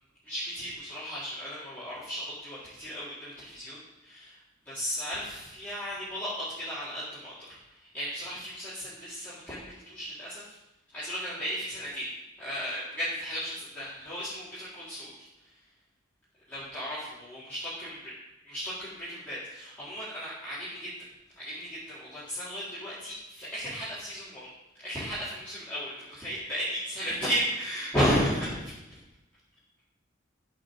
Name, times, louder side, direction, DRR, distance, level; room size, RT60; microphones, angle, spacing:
voice 1, 0.2-4.4 4.6-10.6 10.9-12.1 12.4-15.3 16.5-18.1 18.4-20.9 21.4-24.5 24.8-29.0, equal, 10° left, -12 dB, 4.3 m, -34 dB
15.0 x 6.1 x 7.9 m, 0.94 s
head